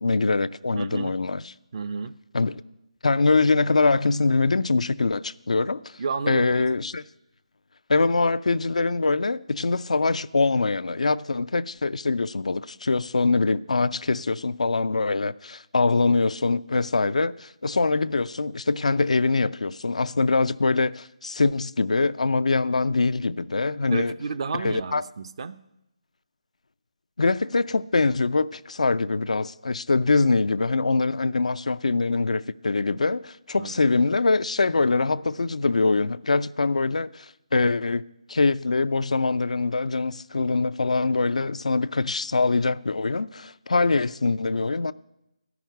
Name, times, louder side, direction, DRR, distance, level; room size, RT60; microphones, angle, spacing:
voice 1, 0.0-1.4 2.3-2.6 3.0-6.0 6.3-7.0 7.9-24.1 24.5-25.0 27.2-38.0 38.3-44.9, left 3 dB, 75° left, 0.4 m, -23 dB
voice 2, 0.7-1.2 1.7-2.2 6.0-6.7 23.9-25.6 33.6-33.7, right 5 dB, 50° right, 0.6 m, -31 dB
13.0 x 6.0 x 9.1 m
figure-of-eight pair, 155°, 4 cm